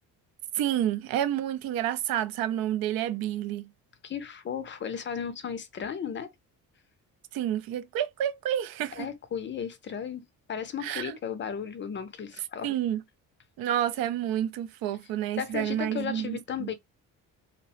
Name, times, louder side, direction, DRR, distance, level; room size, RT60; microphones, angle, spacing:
voice 1, 0.5-3.7 7.3-9.1 10.8-11.2 12.6-13.0 13.6-16.7, right 11 dB, 80° right, 0.5 m, -29 dB
voice 2, 4.0-6.3 9.0-12.7 15.4-16.7, left 7 dB, 35° left, 0.4 m, -35 dB
2.8 x 2.0 x 2.8 m
cardioid pair, 145°, 36 cm